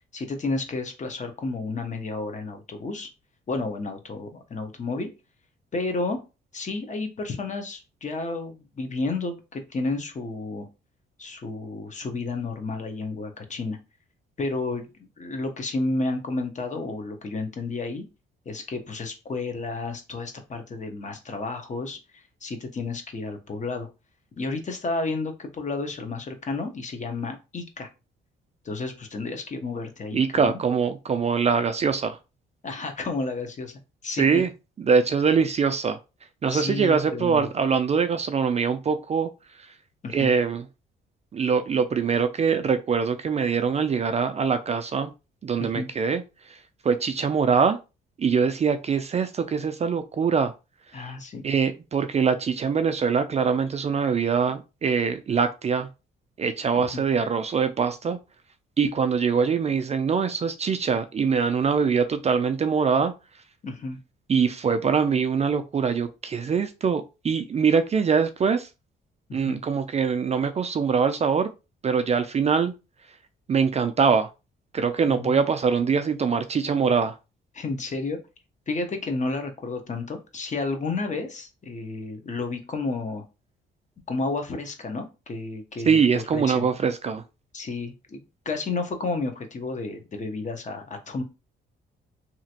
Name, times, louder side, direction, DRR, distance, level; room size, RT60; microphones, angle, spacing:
voice 1, 0.1-3.1 3.5-5.1 5.7-6.2 6.5-10.7 11.2-13.8 14.4-14.9 15.2-18.1 18.5-23.9 24.4-27.9 28.6-30.6 32.6-33.7 34.0-34.4 36.5-37.5 40.0-40.3 45.6-45.9 50.9-51.4 56.9-57.0 63.6-64.0 69.3-69.6 75.1-75.4 77.5-78.2 78.7-83.3 84.1-86.7 87.5-91.2, left 3 dB, 40° left, 6 dB, 0.8 m, -31 dB
voice 2, 30.1-32.2 34.2-34.5 34.8-36.0 36.4-39.3 40.1-40.6 41.3-45.1 45.4-46.2 46.5-46.6 46.8-47.8 48.2-50.5 51.4-55.9 56.4-58.2 58.8-63.1 64.3-68.7 69.3-71.5 71.8-72.7 73.5-74.3 74.7-77.2 85.9-87.2, right 6 dB, 35° right, 9 dB, 0.4 m, -23 dB
2.9 x 2.5 x 2.8 m, 0.28 s
cardioid pair, 90°, 20 cm